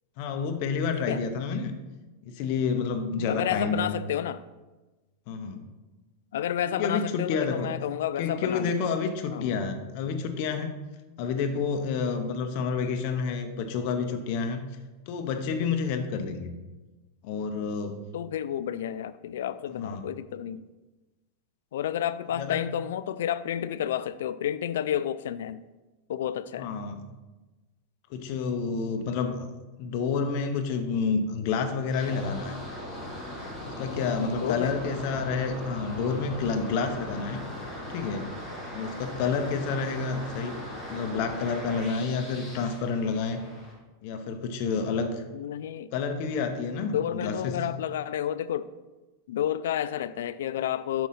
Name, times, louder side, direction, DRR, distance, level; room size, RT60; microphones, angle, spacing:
voice 1, 0.2-1.7 2.2-4.0 5.3-5.6 6.8-7.7 8.2-10.7 11.2-14.6 15.1-16.5 17.2-18.0 19.8-20.1 22.4-22.6 26.6-27.0 28.1-29.5 29.8-32.6 33.7-37.4 37.9-38.3 38.7-40.6 40.9-43.4 44.0-45.2 45.9-47.6, left 5 dB, 45° left, 6 dB, 0.7 m, -29 dB
voice 2, 3.2-4.4 5.6-5.7 6.3-8.7 9.3-9.6 11.2-11.5 18.1-20.7 21.7-25.6 26.1-26.7 34.4-34.7 45.3-45.9 46.9-48.7 49.3-51.1, left 10 dB, 80° left, 15 dB, 0.3 m, -31 dB
sound 1, 31.9-43.7, left 1 dB, ahead, 2.0 m, -39 dB
6.0 x 3.7 x 5.6 m, 1.2 s
supercardioid pair, 170°, 0 cm